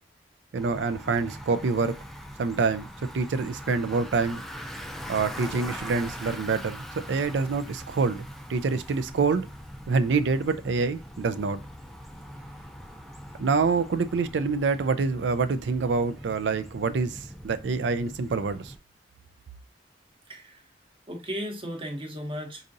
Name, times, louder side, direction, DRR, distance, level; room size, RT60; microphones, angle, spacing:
Bicycle, 0.5-18.8, equal, ahead, 0.4 m, -42 dB
voice 1, 0.5-1.9 2.4-2.9 3.1-4.4 5.1-6.8 7.1-9.5 9.9-11.6 13.4-18.7, right 4 dB, 75° right, 0.4 m, -26 dB
voice 2, 20.3-20.7 21.1-22.6, equal, 30° right, 0.9 m, -35 dB
4.9 x 2.7 x 2.6 m
head